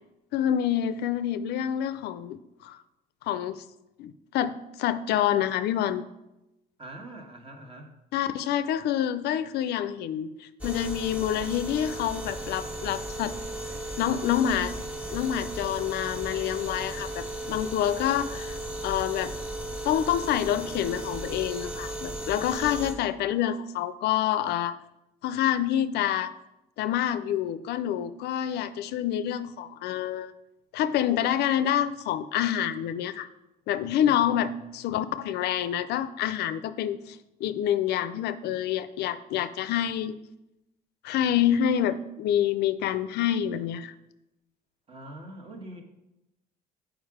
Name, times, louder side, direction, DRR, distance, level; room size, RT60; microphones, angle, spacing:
voice 1, 0.3-2.8 3.2-3.6 4.0-6.0 8.1-13.3 14.0-14.7 15.1-18.6 18.8-19.3 19.8-24.7 25.2-26.3 26.8-30.3 30.7-33.3 33.7-40.1 41.0-43.9, left 10 dB, 75° left, 13 dB, 0.4 m, -27 dB
voice 2, 6.8-7.9 34.0-34.9 44.9-45.8, right 1 dB, 35° right, 3 dB, 1.4 m, -44 dB
sound 1, 10.6-22.9, right 1 dB, 5° right, 1.4 m, -36 dB
7.3 x 5.0 x 4.8 m, 0.92 s
cardioid pair, 110°, 17 cm